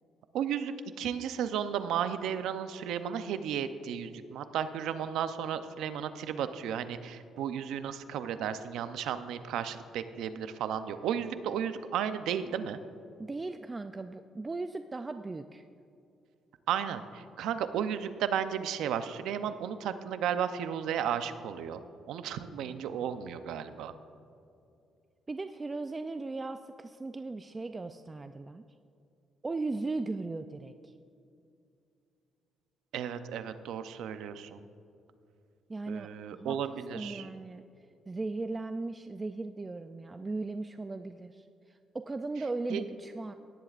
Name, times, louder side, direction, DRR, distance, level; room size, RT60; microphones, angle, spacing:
voice 1, 0.3-12.8 16.7-21.8 22.1-23.9 32.9-34.6 35.9-37.3 42.7-42.8, right 8 dB, 85° right, 11 dB, 0.6 m, -34 dB
voice 2, 13.2-15.6 25.3-28.6 29.4-30.7 35.7-37.6 38.1-43.3, right 3 dB, 25° right, 9 dB, 0.3 m, -37 dB
17.0 x 11.0 x 2.5 m, 2.5 s
cardioid pair, 90°, 0 cm